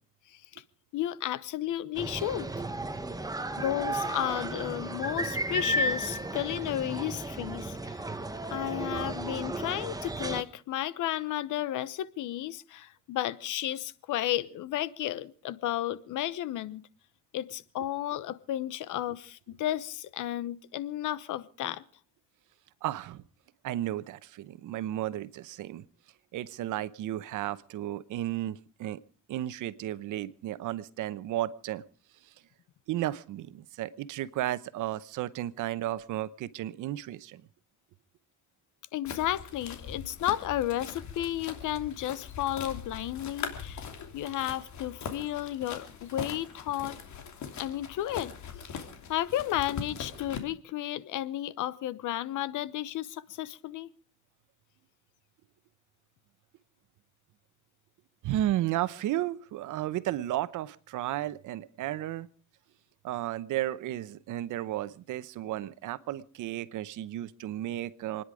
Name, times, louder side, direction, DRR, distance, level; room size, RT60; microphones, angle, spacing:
voice 1, 0.3-0.6 0.9-2.5 3.6-8.0 8.5-16.8 17.3-21.8 38.9-43.9 44.1-47.0 47.6-48.3 48.6-48.7 49.1-53.9, left 13 dB, 85° left, 18 dB, 1.0 m, -33 dB
sound 1, 1.9-10.4, right 1 dB, 10° right, 1.4 m, -34 dB
voice 2, 22.8-23.2 23.6-25.8 26.3-29.0 29.3-31.8 32.9-37.4 58.2-62.3 63.0-68.2, right 13 dB, 85° right, 16 dB, 0.9 m, -33 dB
sound 2, 39.1-50.4, left 6 dB, 70° left, 2.9 m, -41 dB
28.0 x 10.5 x 5.0 m, 0.42 s
cardioid pair, 90°, 30 cm